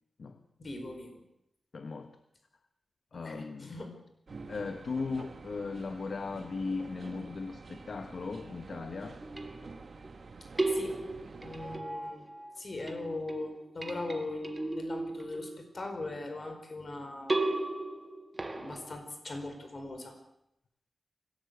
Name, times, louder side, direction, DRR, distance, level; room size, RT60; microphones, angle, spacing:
voice 1, 0.6-1.2 3.2-3.9 10.7-11.0 11.4-12.3 12.6-17.4 18.5-20.2, left 2 dB, 40° left, 5 dB, 4.8 m, -40 dB
voice 2, 1.7-2.1 3.1-3.7 4.5-9.2, left 4 dB, 55° left, 8 dB, 1.3 m, -37 dB
sound 1, 4.3-11.8, right 4 dB, 50° right, 1.9 m, -48 dB
sound 2, 9.2-10.1 10.6-12.6 12.9-15.9 17.3-19.0, right 2 dB, 20° right, 1.9 m, -35 dB
24.5 x 17.5 x 8.2 m, 0.81 s
wide cardioid pair, 160°, 0 cm